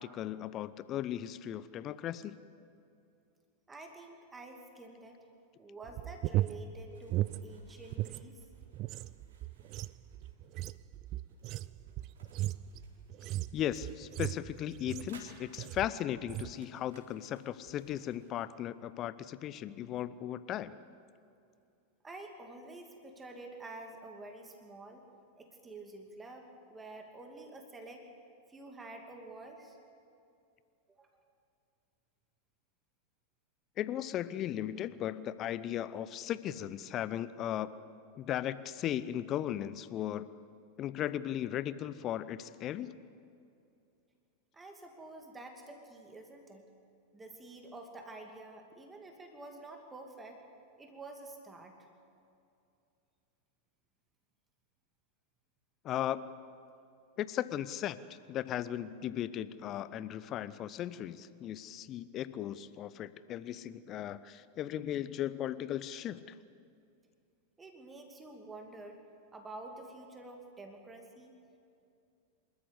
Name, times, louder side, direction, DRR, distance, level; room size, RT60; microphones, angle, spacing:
voice 1, 0.0-2.4 13.5-20.8 33.8-37.7 38.2-40.3 40.8-42.9 55.8-56.3 57.2-66.3, left 11 dB, 35° left, 16 dB, 0.7 m, -37 dB
voice 2, 3.7-5.2 5.6-8.5 22.0-25.0 25.4-28.0 28.5-29.8 31.0-31.1 44.5-46.6 47.1-50.4 50.8-51.8 67.6-69.0 69.3-71.3, right 2 dB, 15° right, 3 dB, 2.5 m, -49 dB
sound 1, 5.8-8.2 8.5-15.2 15.6-15.9 16.2-16.6, right 14 dB, 40° right, 0.5 m, -37 dB
sound 2, 6.9-18.4, right 3 dB, 60° right, 4.5 m, -61 dB
27.0 x 14.0 x 8.3 m, 2.5 s
figure-of-eight pair, 90°, 0 cm